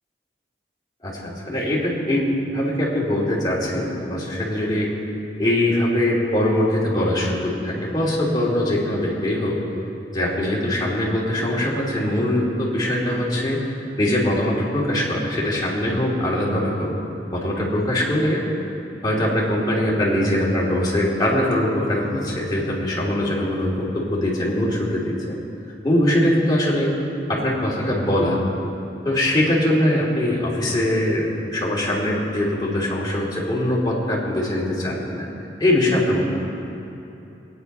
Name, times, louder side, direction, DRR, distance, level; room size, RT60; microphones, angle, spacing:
voice 1, 1.0-4.9 5.4-9.6 10.1-13.6 14.0-16.9 17.3-18.4 19.0-25.4 25.8-26.9 27.3-28.4 29.0-31.2 31.5-35.2 35.6-36.2, left 1 dB, 25° left, -6 dB, 3.0 m, -22 dB
20.5 x 9.6 x 5.5 m, 2.9 s
head